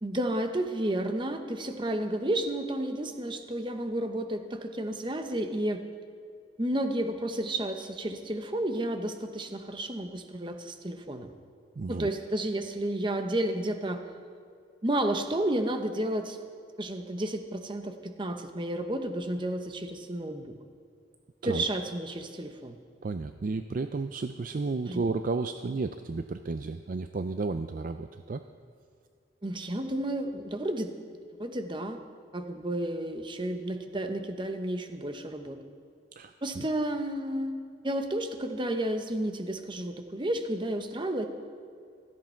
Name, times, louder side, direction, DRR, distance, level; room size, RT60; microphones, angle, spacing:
voice 1, 0.0-5.8 6.6-11.3 11.9-14.0 14.8-16.4 16.8-20.5 21.4-22.8 24.9-25.0 29.4-30.9 31.4-32.0 32.3-35.6 36.4-37.6 37.8-41.2, right 1 dB, 25° right, 6 dB, 1.0 m, -31 dB
voice 2, 11.8-12.1 21.4-21.7 23.0-28.4 36.1-36.7, right 3 dB, 45° right, 9 dB, 0.4 m, -33 dB
16.0 x 13.5 x 4.5 m, 2.2 s
head